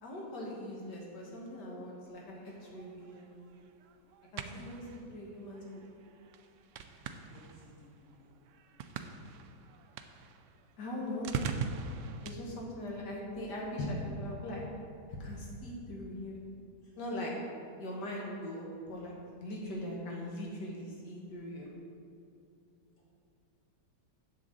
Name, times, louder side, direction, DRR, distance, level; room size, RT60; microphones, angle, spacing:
voice 1, 0.0-3.3 4.3-5.6 10.8-11.3 12.2-14.6 15.2-16.4 17.0-17.3 17.8-21.7, left 1 dB, 75° left, -3 dB, 1.8 m, -40 dB
sound 1, 2.5-12.4, right 6 dB, 80° right, 0.6 m, -43 dB
voice 2, 7.0-8.3 16.8-16.9, equal, 45° left, -7 dB, 2.8 m, -59 dB
9.6 x 4.0 x 7.4 m, 2.5 s
omnidirectional pair, 1.9 m